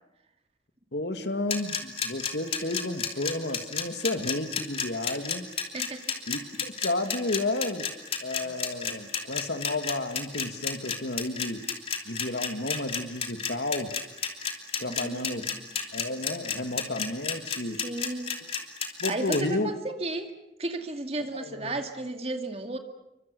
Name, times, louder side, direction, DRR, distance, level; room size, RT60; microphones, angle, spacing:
voice 1, 0.9-5.5 6.3-7.9 8.2-11.7 12.1-14.0 14.8-15.5 15.9-17.8 19.0-19.7 21.4-21.7, left 2 dB, 70° left, 8 dB, 2.2 m, -32 dB
sound 1, 1.5-19.4, left 7 dB, 30° left, 3.0 m, -31 dB
voice 2, 5.7-6.0 8.4-8.5 14.9-15.6 17.8-18.3 19.1-20.3 20.6-22.8, right 2 dB, 35° right, 6 dB, 2.3 m, -34 dB
29.0 x 24.5 x 6.9 m, 0.89 s
head